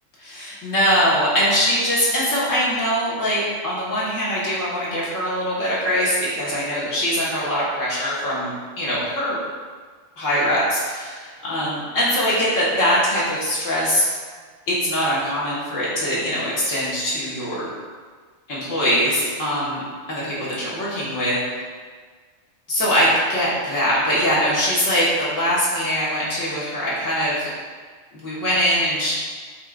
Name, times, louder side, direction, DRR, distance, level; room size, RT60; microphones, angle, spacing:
voice 1, 0.2-9.4 10.2-14.1 14.7-17.7 18.5-21.4 22.7-27.5 28.1-29.1, equal, 90° left, -8 dB, 2.1 m, -22 dB
12.5 x 4.6 x 2.6 m, 1.5 s
omnidirectional pair, 1.3 m